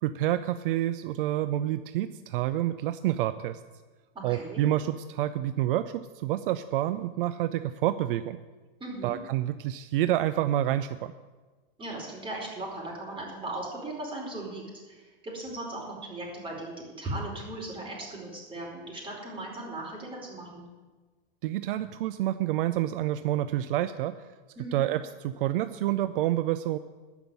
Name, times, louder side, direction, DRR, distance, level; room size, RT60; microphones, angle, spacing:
voice 1, 0.0-3.6 4.2-8.4 9.0-11.1 21.4-24.3 24.7-26.8, right 13 dB, 65° right, 12 dB, 0.6 m, -28 dB
voice 2, 4.1-4.6 8.8-9.2 11.8-20.7 24.6-24.8, right 2 dB, 15° right, -2 dB, 4.7 m, -38 dB
13.0 x 6.0 x 9.5 m, 1.3 s
hypercardioid pair, 115°, 29 cm